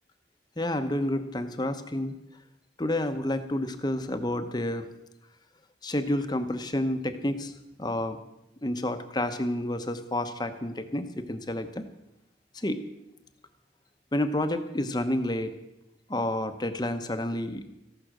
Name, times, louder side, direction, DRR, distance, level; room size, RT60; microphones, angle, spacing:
voice 1, 0.6-2.2 2.8-4.9 5.8-7.5 7.8-8.2 8.6-11.8 12.5-12.8 14.1-15.5 16.1-17.7, left 1 dB, 25° left, 8 dB, 1.0 m, -29 dB
14.5 x 11.5 x 6.2 m, 0.89 s
head